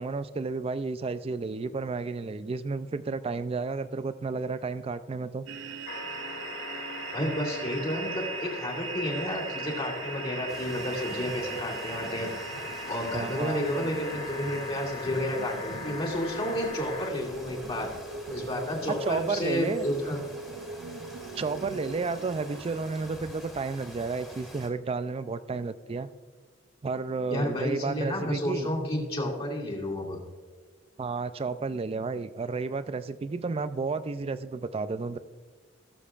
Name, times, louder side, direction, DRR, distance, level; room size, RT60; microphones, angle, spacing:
voice 1, 0.0-5.5 13.1-13.6 18.9-19.9 21.4-26.1 26.8-28.7 31.0-35.2, right 4 dB, 30° right, 13 dB, 0.3 m, -32 dB
sound 1, 5.5-22.6, right 5 dB, 70° right, 0.6 m, -41 dB
Ham radio transmission, 5.8-17.1 18.5-18.6, left 4 dB, 60° left, 3.1 m, -40 dB
voice 2, 7.1-12.3 12.9-17.9 18.3-20.2 27.3-30.2, left 1 dB, 30° left, -3 dB, 2.4 m, -31 dB
sound 2, 10.5-24.7, equal, ahead, 1.8 m, -47 dB
17.0 x 7.2 x 2.4 m, 1.4 s
head